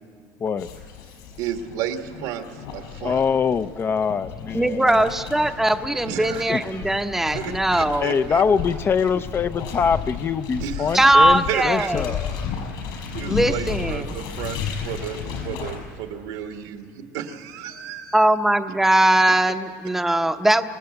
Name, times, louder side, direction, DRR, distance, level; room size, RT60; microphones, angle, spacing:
sound 1, 0.6-15.8, left 6 dB, 75° left, 5.6 m, -33 dB
voice 1, 1.4-2.5 2.7-3.2 5.9-6.4 7.3-8.4 10.6-11.9 13.1-14.6 14.8-18.2, right 9 dB, 80° right, 5 dB, 1.8 m, -32 dB
voice 2, 3.0-5.0 6.5-6.8 8.0-12.5, left 6 dB, 30° left, 11 dB, 0.6 m, -24 dB
voice 3, 4.5-8.1 10.9-12.1 13.3-14.1 18.1-20.7, right 1 dB, 5° right, 7 dB, 0.8 m, -20 dB
26.0 x 18.5 x 7.9 m, 2.2 s
supercardioid pair, 115°, 8 cm